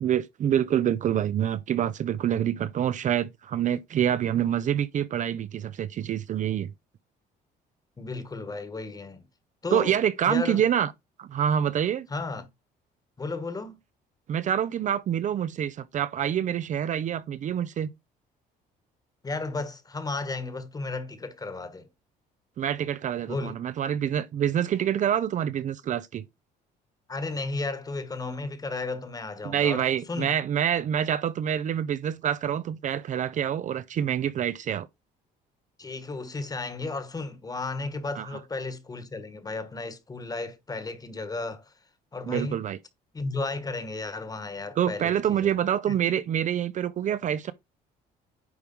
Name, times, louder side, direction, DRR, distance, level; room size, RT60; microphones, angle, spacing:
voice 1, 0.0-6.7 9.7-10.9 11.2-12.1 14.3-17.9 22.6-26.2 29.4-34.9 38.2-38.3 42.3-42.8 44.8-47.5, right 9 dB, 45° right, 0.6 m, -26 dB
voice 2, 8.0-9.2 9.6-10.0 10.3-10.6 12.1-12.5 13.2-13.8 19.2-21.9 23.3-23.5 27.1-30.4 35.8-41.7 42.1-42.6 43.1-45.5 45.9-46.0, left 3 dB, 20° left, 1.4 m, -34 dB
9.5 x 3.4 x 5.4 m
cardioid pair, 110°, 17 cm